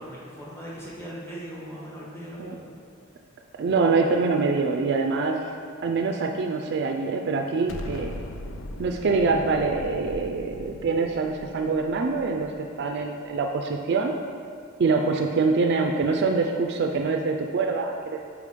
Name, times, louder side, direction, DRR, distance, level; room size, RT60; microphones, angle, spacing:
voice 1, 0.0-2.7, equal, 15° left, -6 dB, 1.4 m, -39 dB
voice 2, 3.6-5.4 5.8-8.1 8.8-14.1 14.8-18.2, right 4 dB, 55° right, 3 dB, 0.4 m, -25 dB
Explosion, 7.7-12.9, left 2 dB, 70° left, 0.4 m, -39 dB
5.2 x 4.9 x 5.0 m, 2.2 s
head